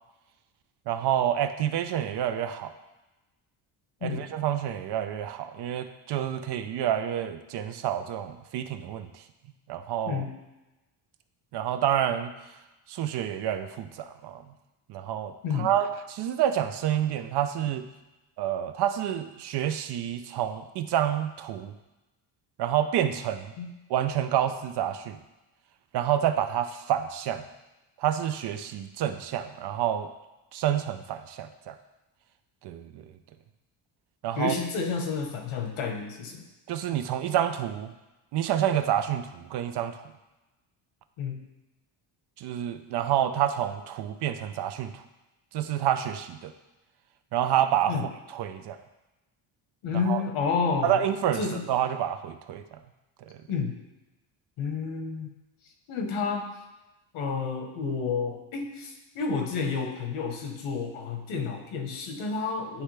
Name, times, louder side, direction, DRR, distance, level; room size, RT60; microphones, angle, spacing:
voice 1, 0.9-2.7 4.0-9.2 9.7-10.2 11.5-12.3 12.9-14.4 14.9-17.9 18.4-21.7 22.6-23.5 23.9-25.2 25.9-27.4 28.0-30.1 30.5-31.8 32.6-33.1 34.2-34.5 36.7-37.9 38.3-40.0 42.4-45.0 45.5-46.5 47.3-48.8 49.9-50.2 50.8-52.8 53.3-53.4, right 10 dB, 60° right, 10 dB, 0.5 m, -28 dB
voice 2, 34.4-36.5 41.2-41.4 47.9-48.1 49.8-51.0 51.4-51.7 53.5-53.7 54.6-55.3 55.9-56.5 57.1-62.8, left 5 dB, 90° left, 3 dB, 1.2 m, -30 dB
9.8 x 3.3 x 3.3 m, 1.0 s
cardioid pair, 145°, 48 cm